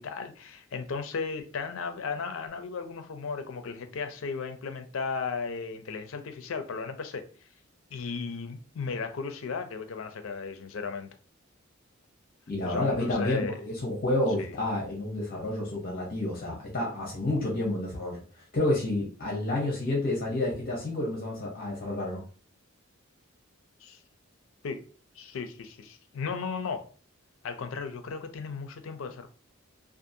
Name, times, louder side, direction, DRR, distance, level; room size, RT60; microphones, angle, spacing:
voice 1, 0.0-7.2 7.9-11.1 12.6-13.5 14.4-14.5 23.8-24.0 24.6-24.8 25.2-26.9 27.4-29.3, left 5 dB, 80° left, 0.4 m, -35 dB
voice 2, 12.5-22.2, left 1 dB, 45° left, 0.8 m, -30 dB
2.6 x 2.4 x 2.6 m
head